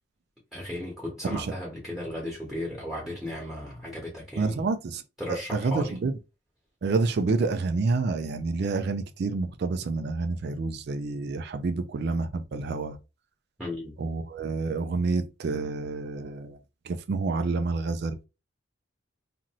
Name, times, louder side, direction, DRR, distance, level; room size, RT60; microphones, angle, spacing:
voice 1, 0.5-4.6 5.2-6.0 13.6-13.9, left 1 dB, ahead, 1.0 m, -35 dB
voice 2, 4.4-5.0 5.3-6.1 6.8-13.0 14.0-16.6 16.8-18.2, right 3 dB, 55° right, 0.3 m, -28 dB
2.6 x 2.5 x 3.0 m
head